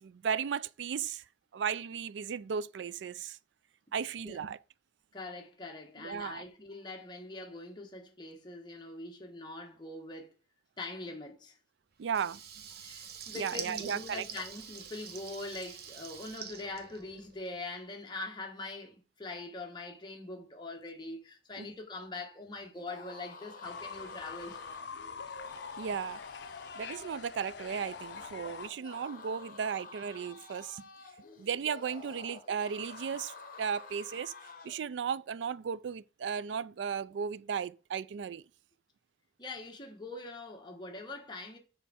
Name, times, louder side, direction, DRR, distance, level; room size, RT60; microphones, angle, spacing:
voice 1, 0.0-1.2 1.5-3.4 3.9-4.6 6.0-6.4 12.0-12.4 13.3-14.2 21.6-21.7 25.8-26.2 26.8-30.9 31.4-34.3 34.6-38.4, right 7 dB, 80° right, 0.4 m, -35 dB
voice 2, 5.1-10.3 10.8-11.6 12.8-24.6 27.1-27.2 39.4-41.6, left 2 dB, 25° left, 1.4 m, -43 dB
Water tap faucet / Liquid, 12.1-17.6, right 7 dB, 60° right, 1.0 m, -46 dB
sound 1, 22.7-34.8, left 4 dB, 50° left, 1.1 m, -50 dB
Fowl / Bird, 23.6-28.7, left 6 dB, 70° left, 0.6 m, -45 dB
7.3 x 4.6 x 4.3 m
head